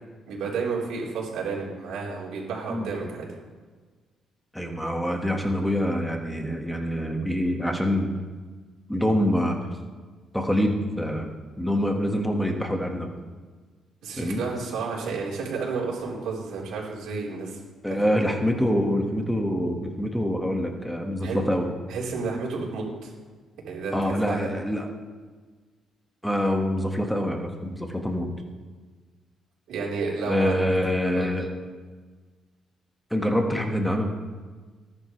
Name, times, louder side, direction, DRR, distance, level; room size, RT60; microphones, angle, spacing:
voice 1, 0.3-3.3 14.0-17.6 17.9-18.0 21.2-21.4 21.9-23.1 23.7-24.5 29.7-30.6 31.1-31.3, right 4 dB, 80° right, -3 dB, 4.3 m, -31 dB
voice 2, 4.5-8.1 8.9-9.6 10.3-11.3 11.6-13.1 14.2-14.4 17.8-21.7 23.9-24.9 26.2-28.3 30.3-31.5 33.1-34.1, equal, 5° left, 2 dB, 1.8 m, -25 dB
19.5 x 10.5 x 3.4 m, 1.4 s
cardioid pair, 90°, 0 cm